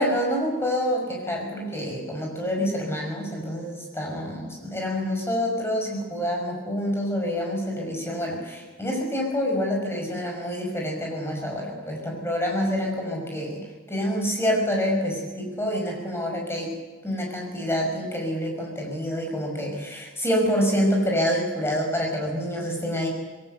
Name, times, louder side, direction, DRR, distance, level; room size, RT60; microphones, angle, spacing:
voice 1, 0.0-13.6 13.9-16.7 17.0-23.1, equal, 10° left, 0 dB, 5.9 m, -27 dB
22.0 x 17.5 x 8.0 m, 1.3 s
head